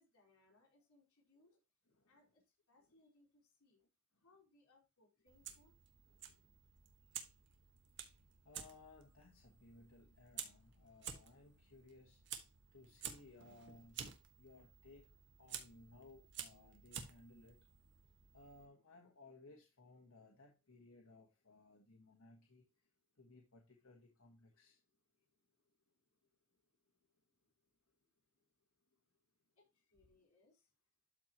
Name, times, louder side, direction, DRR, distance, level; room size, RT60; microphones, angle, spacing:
voice 1, 0.0-1.6 2.1-3.8 4.2-5.7 29.6-30.7, left 2 dB, 90° left, 4.5 m, -72 dB
Fire, 5.3-18.7, right 8 dB, 55° right, 1.4 m, -52 dB
voice 2, 6.1-6.5 8.4-12.2 12.7-14.0 14.4-17.6 18.3-22.7 23.2-24.8, left 2 dB, 70° left, 1.5 m, -62 dB
12.5 x 4.6 x 2.9 m
head